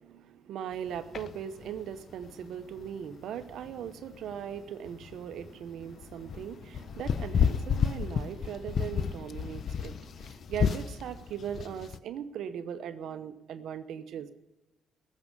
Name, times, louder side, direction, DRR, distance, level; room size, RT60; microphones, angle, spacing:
voice 1, 0.0-14.3, right 9 dB, 75° right, 10 dB, 0.9 m, -39 dB
sound 1, 0.7-12.0, left 7 dB, 55° left, 0.6 m, -33 dB
15.5 x 7.5 x 9.9 m, 1.1 s
cardioid pair, 90°, 0 cm